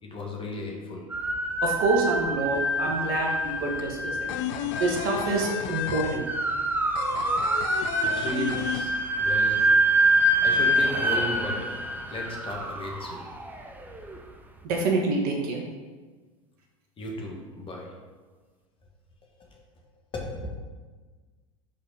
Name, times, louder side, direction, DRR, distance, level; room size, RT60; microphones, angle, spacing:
voice 1, 0.0-1.1 8.0-9.7 10.4-13.3 17.0-18.0 19.5-19.6 20.1-20.5, left 1 dB, 30° left, 0 dB, 1.6 m, -35 dB
sound 1, 1.1-14.2, right 1 dB, 10° right, 0.8 m, -26 dB
voice 2, 1.6-4.3 4.8-6.3 9.6-9.7 14.6-15.6, right 3 dB, 50° right, 0 dB, 1.5 m, -27 dB
sound 2, 2.5-2.6 2.9-9.5 9.7-9.8 10.2-11.0, left 9 dB, 55° left, 0.5 m, -33 dB
5.3 x 4.3 x 5.4 m, 1.4 s
hypercardioid pair, 85°, 18 cm